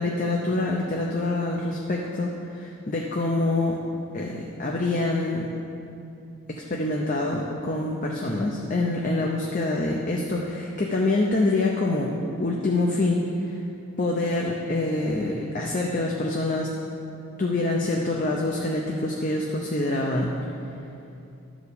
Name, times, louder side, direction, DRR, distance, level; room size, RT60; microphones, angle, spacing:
voice 1, 0.0-3.8 4.1-5.5 6.5-12.1 12.4-13.6 14.0-16.7 17.4-20.4, left 2 dB, 35° left, -1 dB, 0.7 m, -26 dB
11.5 x 5.0 x 6.8 m, 2.6 s
head